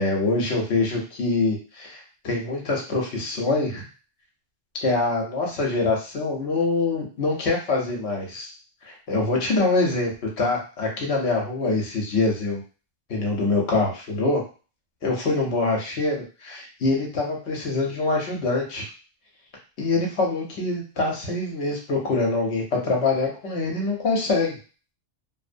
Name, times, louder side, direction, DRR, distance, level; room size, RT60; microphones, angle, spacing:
voice 1, 0.0-3.9 4.8-8.5 8.8-12.6 13.1-14.4 15.0-18.9 19.8-24.5, left 3 dB, 65° left, -1 dB, 1.0 m, -24 dB
2.7 x 2.0 x 2.5 m, 0.36 s
omnidirectional pair, 1.2 m